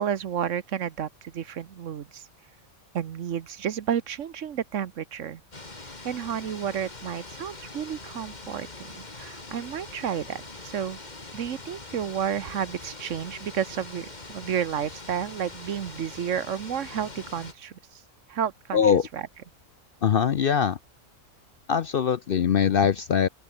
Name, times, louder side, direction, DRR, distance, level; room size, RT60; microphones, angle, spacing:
voice 1, 0.0-2.2 2.9-5.4 6.0-8.7 9.2-11.0 11.3-17.7 18.3-19.3, right 8 dB, 65° right, 1.2 m, -31 dB
sound 1, 5.5-17.5, left 2 dB, 30° left, 2.5 m, -43 dB
voice 2, 18.7-19.1 20.0-20.8 21.7-23.3, left 7 dB, 55° left, 0.7 m, -22 dB
open air
omnidirectional pair, 1.4 m